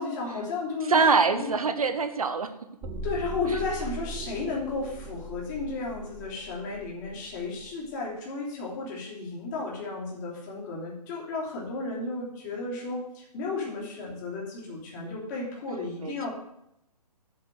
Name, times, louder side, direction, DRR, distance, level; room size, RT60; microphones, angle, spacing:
voice 1, 0.0-1.5 3.0-16.3, left 3 dB, 30° left, -4 dB, 3.2 m, -33 dB
voice 2, 0.9-2.5 3.5-3.6 16.0-16.3, right 4 dB, 60° right, 9 dB, 1.2 m, -24 dB
sound 1, 2.8-7.8, right 2 dB, 5° right, 0.5 m, -39 dB
7.6 x 6.8 x 7.8 m, 0.80 s
figure-of-eight pair, 135°, 21 cm